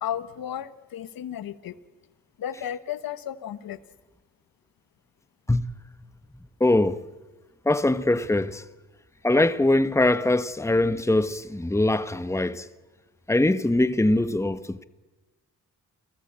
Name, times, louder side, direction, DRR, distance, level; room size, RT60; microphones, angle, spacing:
voice 1, 0.0-1.8 2.4-3.8, left 10 dB, 85° left, 1.2 m, -33 dB
voice 2, 6.6-7.0 7.6-8.6 9.2-12.7 13.3-14.8, left 2 dB, 10° left, 1.2 m, -22 dB
29.5 x 18.5 x 8.7 m
cardioid pair, 60°, 34 cm